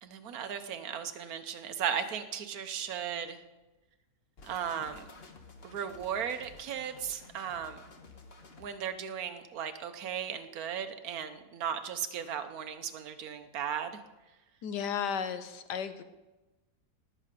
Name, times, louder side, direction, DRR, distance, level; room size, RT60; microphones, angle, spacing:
voice 1, 0.0-3.4 4.5-5.0 5.6-7.8 8.6-13.9, right 8 dB, 65° right, 9 dB, 1.3 m, -36 dB
sound 1, 4.4-8.7, left 3 dB, 40° left, 1.4 m, -52 dB
voice 2, 14.6-16.0, left 7 dB, 80° left, 11 dB, 1.5 m, -34 dB
19.0 x 7.6 x 5.1 m, 1.1 s
omnidirectional pair, 1.8 m